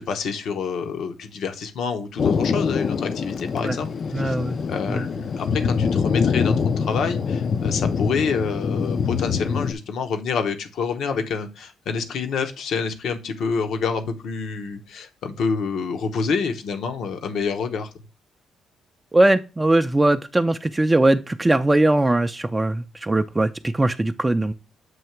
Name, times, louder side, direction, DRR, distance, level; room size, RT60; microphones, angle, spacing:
voice 1, 0.1-3.9 4.2-4.4 4.7-17.9, left 5 dB, 70° left, 0.8 m, -27 dB
Thunder, 2.2-9.7, left 6 dB, 50° left, 0.4 m, -24 dB
voice 2, 4.1-4.6 4.9-5.1 19.1-24.5, right 2 dB, 15° right, 0.4 m, -20 dB
7.8 x 2.8 x 4.4 m
cardioid pair, 90°, 0 cm